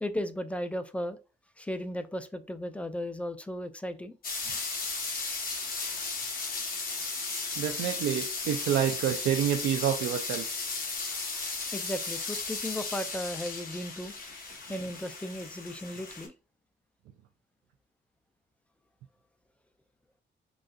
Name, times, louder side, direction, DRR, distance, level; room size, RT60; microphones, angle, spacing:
voice 1, 0.0-1.2 1.6-4.2 11.7-14.1 14.7-16.3, equal, 5° left, 10 dB, 0.3 m, -35 dB
sound 1, 4.2-16.3, left 4 dB, 45° left, 1.2 m, -35 dB
voice 2, 7.6-10.5 14.2-14.6, right 10 dB, 75° right, 5 dB, 0.4 m, -28 dB
3.9 x 2.4 x 2.4 m, 0.32 s
cardioid pair, 90°, 20 cm